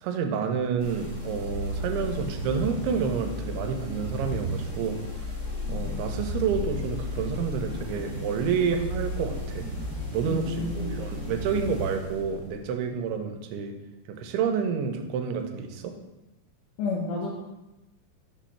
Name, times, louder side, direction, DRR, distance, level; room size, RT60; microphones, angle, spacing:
voice 1, 0.0-5.0 5.7-9.7 10.1-13.7 14.2-15.9, right 6 dB, 85° right, 5 dB, 2.6 m, -29 dB
sound 1, 0.8-12.7, left 1 dB, 15° right, 0.9 m, -34 dB
voice 2, 10.3-11.0 16.8-17.3, left 3 dB, 75° left, -4 dB, 1.9 m, -30 dB
6.2 x 3.1 x 5.7 m, 1.0 s
omnidirectional pair, 4.6 m